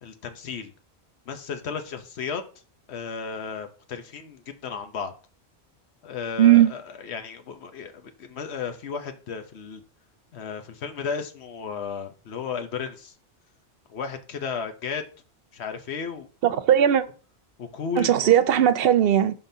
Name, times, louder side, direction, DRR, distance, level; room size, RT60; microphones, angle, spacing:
voice 1, 0.0-0.7 1.3-2.4 2.9-5.1 6.0-9.8 10.3-13.1 13.9-15.1 15.5-16.7 17.6-18.3, left 6 dB, 80° left, 1.1 m, -34 dB
voice 2, 6.4-6.7 16.4-17.0 18.0-19.3, right 10 dB, 70° right, 0.8 m, -18 dB
11.0 x 3.8 x 2.7 m
omnidirectional pair, 1.1 m